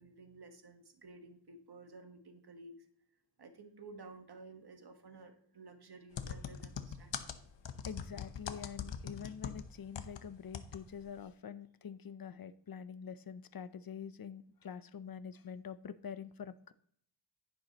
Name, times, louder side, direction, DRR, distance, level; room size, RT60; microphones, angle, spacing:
voice 1, 0.0-2.9 3.4-7.4, right 3 dB, 60° right, 6 dB, 1.5 m, -54 dB
sound 1, 6.2-10.2 10.5-10.8 11.1-11.2, left 7 dB, 85° left, 0.9 m, -42 dB
voice 2, 7.8-16.7, left 7 dB, 55° left, 13 dB, 0.6 m, -46 dB
10.5 x 10.0 x 2.9 m, 0.64 s
wide cardioid pair, 110°, 43 cm